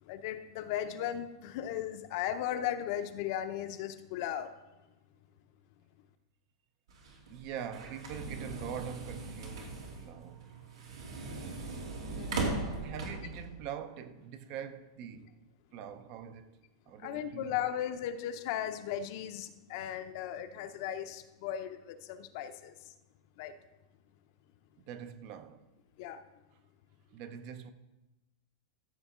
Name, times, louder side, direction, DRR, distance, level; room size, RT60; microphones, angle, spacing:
voice 1, 0.0-4.5 12.1-12.8 17.0-22.9 23.4-23.5 26.0-26.2, left 10 dB, 45° left, 0.7 m, -37 dB
sound 1, 6.9-13.5, right 3 dB, 90° right, 2.7 m, -39 dB
voice 2, 7.3-10.5 12.8-15.5 15.7-16.6 16.9-17.7 24.9-25.6 27.1-27.7, right 8 dB, 40° right, 0.6 m, -43 dB
14.0 x 7.0 x 3.7 m
supercardioid pair, 155°, 3 cm